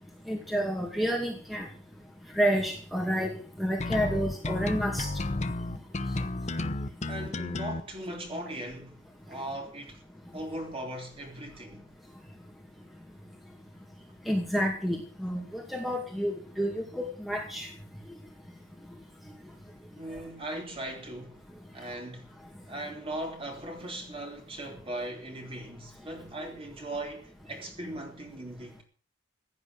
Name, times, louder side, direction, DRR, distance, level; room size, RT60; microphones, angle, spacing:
voice 1, 0.3-1.7 2.4-5.1 14.3-17.7, equal, ahead, 2.3 m, -29 dB
sound 1, 3.8-7.8, left 2 dB, 35° left, 0.9 m, -32 dB
voice 2, 7.1-10.0 10.3-11.9 20.0-21.4 21.7-22.3 22.7-28.8, right 1 dB, 30° right, 3.8 m, -39 dB
16.0 x 9.7 x 6.8 m
head